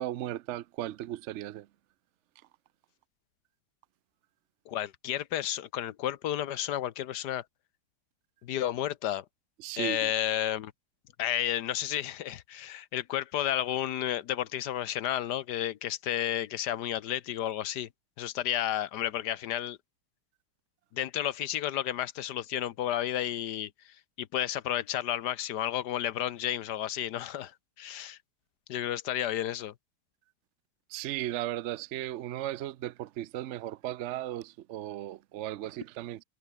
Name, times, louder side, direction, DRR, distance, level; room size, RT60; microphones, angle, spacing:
voice 1, 0.0-1.7 9.6-10.1 30.9-36.2, right 13 dB, 70° right, 0.7 m, -36 dB
voice 2, 4.7-7.4 8.4-9.2 9.8-10.7 11.2-17.9 18.2-19.8 20.9-23.7 24.2-27.5 27.8-28.2 28.7-29.7, left 11 dB, 90° left, 1.5 m, -32 dB
omnidirectional pair, 1.7 m